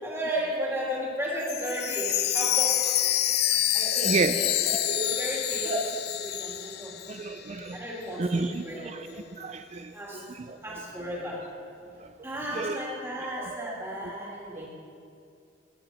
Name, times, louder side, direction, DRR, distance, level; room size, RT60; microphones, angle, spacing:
voice 1, 0.0-2.9 3.7-5.8 6.2-6.9 7.7-9.2 9.9-10.2 10.6-11.4 12.2-14.7, equal, 15° right, -4 dB, 2.5 m, -34 dB
Chime, 1.4-7.4 7.7-7.8 8.4-8.5, left 12 dB, 60° left, 0.5 m, -27 dB
voice 2, 3.9-4.4 4.9-5.1 5.6-5.8 7.1-7.8 8.2-10.6 12.0-12.1 12.5-12.8 13.4-13.7 14.6-14.7, right 4 dB, 35° right, 9 dB, 0.4 m, -31 dB
16.5 x 9.6 x 4.3 m, 2.5 s
head